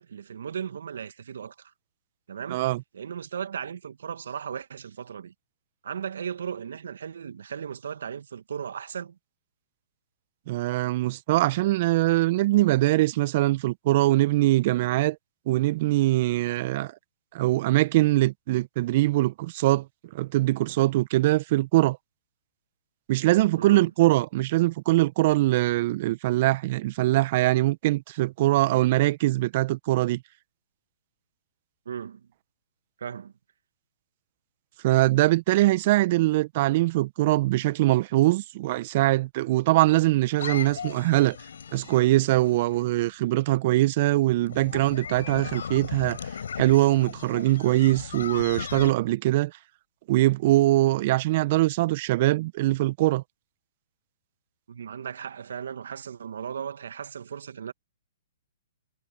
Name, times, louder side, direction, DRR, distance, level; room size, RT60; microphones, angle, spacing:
voice 1, 0.0-1.7 2.3-2.6 2.9-5.3 5.8-9.2 23.5-23.9 31.9-32.3 33.0-33.3 54.7-57.7, right 8 dB, 70° right, 2.4 m, -36 dB
voice 2, 2.5-2.8 10.5-15.2 15.5-16.9 17.3-19.9 20.1-22.0 23.1-30.2 34.8-41.4 41.7-46.2 46.6-49.5 50.1-53.2, right 17 dB, 45° right, 1.5 m, -22 dB
sound 1, 40.4-43.0 44.5-48.9, left 7 dB, 70° left, 7.3 m, -37 dB
hypercardioid pair, 125°, 0 cm